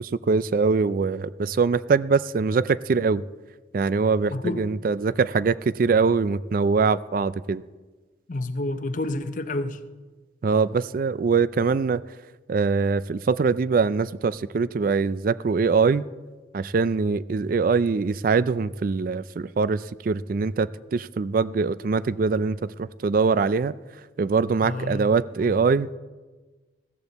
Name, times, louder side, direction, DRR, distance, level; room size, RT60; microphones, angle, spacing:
voice 1, 0.0-3.2 3.7-7.6 10.4-12.0 12.5-16.0 16.5-23.7 24.2-25.9, right 4 dB, 45° right, 0.3 m, -23 dB
voice 2, 4.3-4.7 8.3-9.8 24.6-25.1 25.4-25.5, left 2 dB, 45° left, 0.7 m, -29 dB
16.0 x 14.0 x 4.1 m
head